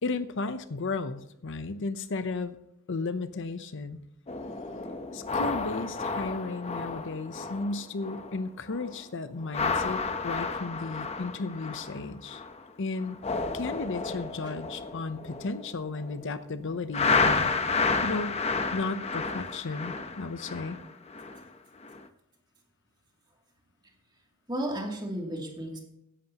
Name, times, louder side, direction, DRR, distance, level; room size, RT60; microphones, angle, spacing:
voice 1, 0.0-2.6 2.9-4.0 5.1-12.4 12.8-13.2 13.5-17.5 18.0-20.8, left 3 dB, 60° left, 11 dB, 0.7 m, -34 dB
sound 1, 4.3-8.4 8.7-9.0 9.4-12.6 13.0-16.2 16.9-21.4 21.8-22.1, left 4 dB, 30° left, 0.8 m, -31 dB
voice 2, 24.5-25.8, right 1 dB, 20° right, 0 dB, 2.7 m, -33 dB
15.5 x 11.0 x 2.9 m, 0.82 s
head